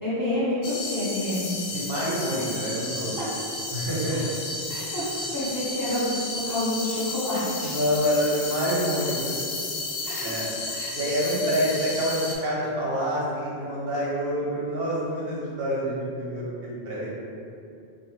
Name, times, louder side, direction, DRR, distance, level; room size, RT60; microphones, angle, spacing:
voice 1, 0.0-1.5 3.2-3.3 4.1-4.2 4.7-7.7 10.0-10.9, left 1 dB, 20° left, -11 dB, 0.8 m, -29 dB
sound 1, 0.6-12.3, left 2 dB, 75° left, 0.8 m, -33 dB
voice 2, 1.7-3.2 3.7-4.2 7.6-9.3 10.2-10.5 10.9-17.1, equal, 65° right, -6 dB, 1.0 m, -27 dB
3.8 x 2.6 x 3.1 m, 2.6 s
omnidirectional pair, 1.1 m